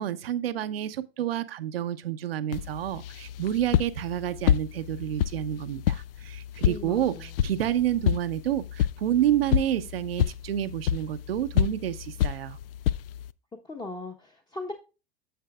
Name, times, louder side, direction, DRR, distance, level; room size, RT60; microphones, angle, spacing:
voice 1, 0.0-12.6, right 11 dB, 75° right, 0.8 m, -29 dB
sound 1, 2.5-13.3, left 11 dB, 70° left, 0.4 m, -29 dB
voice 2, 6.6-7.2 13.7-14.7, left 3 dB, 15° left, 1.0 m, -38 dB
10.0 x 7.4 x 2.3 m
hypercardioid pair, 90°, 29 cm